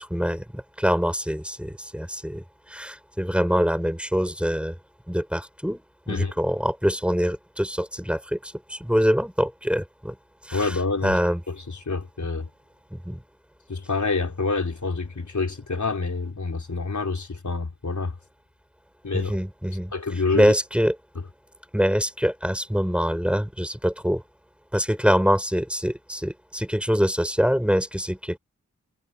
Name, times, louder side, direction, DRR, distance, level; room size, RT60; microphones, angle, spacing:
voice 1, 0.0-4.8 5.1-10.1 10.5-10.8 11.0-11.4 12.9-13.2 19.1-19.9 20.3-21.0 21.7-24.2 24.7-28.4, equal, 5° right, 5.8 m, -24 dB
voice 2, 10.5-11.2 11.5-12.5 13.7-18.1 19.0-19.4 19.9-20.5, left 3 dB, 65° left, 3.9 m, -27 dB
cardioid pair, 45°, 32 cm